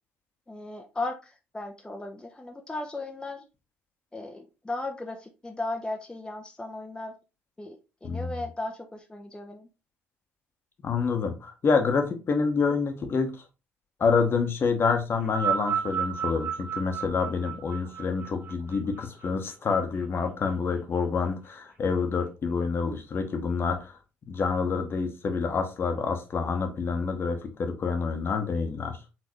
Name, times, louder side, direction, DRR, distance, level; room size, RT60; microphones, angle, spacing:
voice 1, 0.5-3.4 4.1-7.1 7.6-9.7, left 2 dB, 15° left, 3 dB, 0.7 m, -36 dB
voice 2, 10.8-13.4 14.0-23.9 24.3-29.0, left 5 dB, 40° left, 6 dB, 1.0 m, -27 dB
sound 1, 15.2-19.7 20.6-20.7, right 8 dB, 40° right, 1.5 m, -32 dB
4.3 x 3.9 x 3.1 m, 0.28 s
figure-of-eight pair, 50°, 6 cm